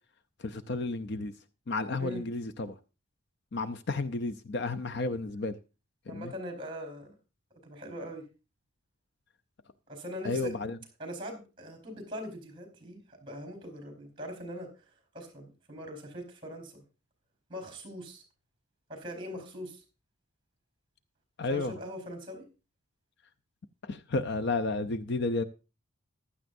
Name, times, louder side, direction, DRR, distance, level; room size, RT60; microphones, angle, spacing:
voice 1, 0.4-1.3 1.7-2.8 3.5-5.6 6.1-6.3 10.2-10.8 21.4-21.7 23.8-25.4, left 3 dB, 50° left, 0.5 m, -32 dB
voice 2, 6.1-7.1 7.6-8.3 9.9-10.5 11.0-14.7 15.1-16.8 17.5-18.2 18.9-19.8 21.5-22.4, equal, 25° right, 4.3 m, -41 dB
15.5 x 11.5 x 2.6 m
head